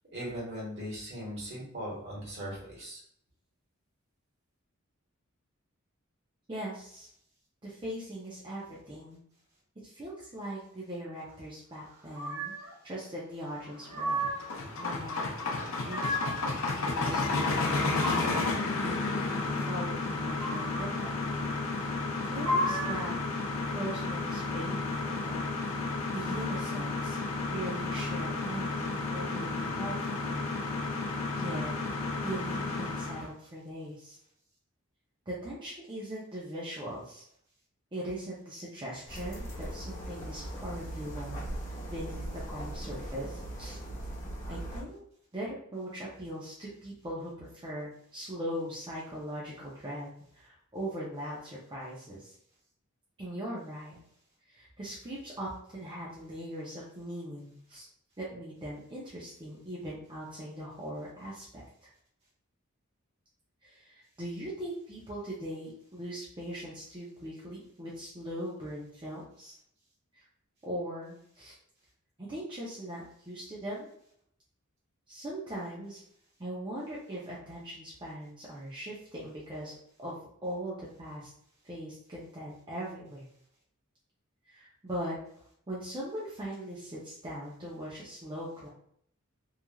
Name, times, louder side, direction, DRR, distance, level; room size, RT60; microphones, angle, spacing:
voice 1, 0.1-3.0, equal, 55° right, -5 dB, 1.4 m, -39 dB
voice 2, 6.5-7.1 7.6-9.2 9.8-12.5 12.8-14.4 14.8-15.6 15.8-18.4 18.8-21.1 21.8-22.0 22.2-23.2 23.7-27.2 27.5-30.6 31.3-31.7 32.2-34.2 35.3-37.2 37.9-41.5 41.9-43.8 44.5-45.0 45.3-52.3 53.2-54.0 54.5-57.8 58.2-61.9 63.6-69.5 70.1-70.3 70.6-71.5 72.2-73.9 75.1-76.0 76.4-79.7 80.0-81.3 81.6-83.3 84.4-85.2 85.7-88.7, right 1 dB, 25° right, -6 dB, 0.5 m, -40 dB
sound 1, 12.1-12.7 13.6-14.6 15.5-16.5 17.5-18.6 20.1-21.0 22.1-23.2, equal, 80° right, 0.8 m, -34 dB
sound 2, 13.9-33.3, left 3 dB, 65° left, 0.5 m, -32 dB
sound 3, 39.1-44.8, right 1 dB, 35° left, 1.1 m, -39 dB
3.0 x 2.4 x 2.3 m, 0.67 s
head